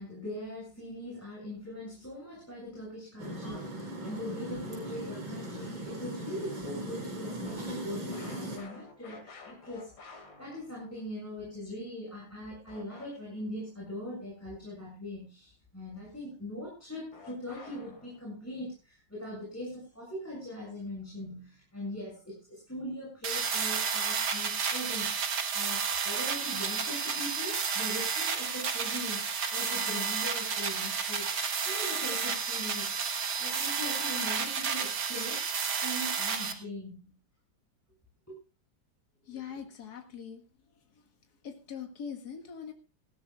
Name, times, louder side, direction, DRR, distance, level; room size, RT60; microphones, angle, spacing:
voice 1, 0.0-31.3 31.6-32.9 33.4-35.4 35.8-37.2 38.3-38.4, left 1 dB, 5° left, -5 dB, 7.0 m, -41 dB
sound 1, 3.2-8.6, right 1 dB, 85° right, 5.1 m, -39 dB
sound 2, 7.4-11.1 12.7-13.4 17.1-18.3, left 4 dB, 80° left, 3.2 m, -51 dB
sound 3, 23.2-36.5, right 6 dB, 60° right, 2.0 m, -31 dB
voice 2, 39.2-40.4 40.7-41.0 41.4-42.7, left 7 dB, 55° left, 4 dB, 2.4 m, -42 dB
19.5 x 15.5 x 2.5 m, 0.31 s
omnidirectional pair, 2.1 m